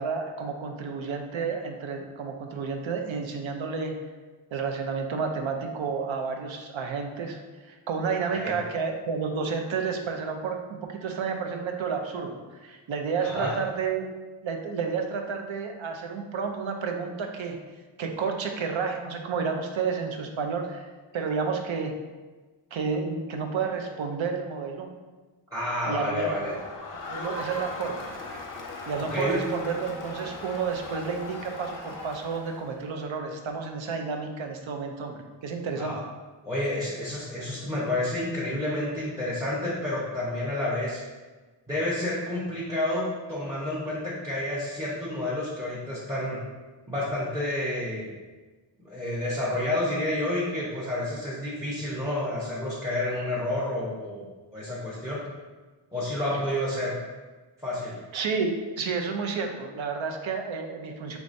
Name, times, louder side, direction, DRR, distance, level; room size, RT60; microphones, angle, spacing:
voice 1, 0.0-4.0 4.5-7.4 7.6-14.1 14.4-17.6 18.0-20.9 21.1-22.0 22.7-24.9 25.9-26.5 27.1-28.1 28.9-36.0 58.1-61.2, right 5 dB, 65° right, 4 dB, 0.6 m, -31 dB
voice 2, 13.2-13.5 25.5-26.5 29.1-29.4 35.8-36.0 36.4-41.0 41.7-46.4 46.9-48.1 48.8-54.2 54.5-55.2 55.9-57.0 57.6-58.0, left 1 dB, 5° right, -8 dB, 0.8 m, -29 dB
Crowd, 26.0-32.8, left 3 dB, 40° left, 0.6 m, -39 dB
4.8 x 3.2 x 2.6 m, 1.3 s
wide cardioid pair, 120°, 50 cm